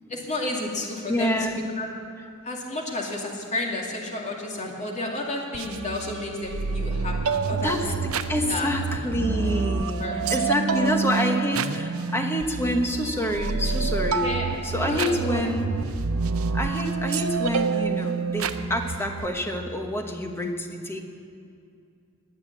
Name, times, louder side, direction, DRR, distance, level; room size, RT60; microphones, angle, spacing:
voice 1, 0.1-1.4 1.8-1.9 2.4-8.0 8.5-8.7 10.0-10.2 10.7-10.9 14.2-14.5 14.8-15.5, left 2 dB, 35° left, -1 dB, 2.4 m, -31 dB
voice 2, 1.1-1.6 7.6-8.0 8.3-14.4 14.6-15.7 16.5-21.0, left 1 dB, 10° left, 3 dB, 1.3 m, -27 dB
sound 1, 5.5-19.3, right 4 dB, 80° right, 0.6 m, -28 dB
21.0 x 7.3 x 8.7 m, 2.4 s
head